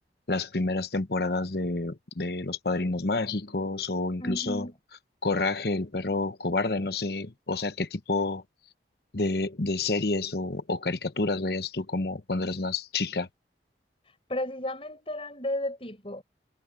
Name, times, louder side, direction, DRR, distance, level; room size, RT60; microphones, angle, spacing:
voice 1, 0.3-4.7 5.2-8.4 9.1-13.3, left 3 dB, 60° left, 1.0 m, -29 dB
voice 2, 4.2-4.8 14.3-16.2, left 1 dB, 30° left, 5.9 m, -33 dB
head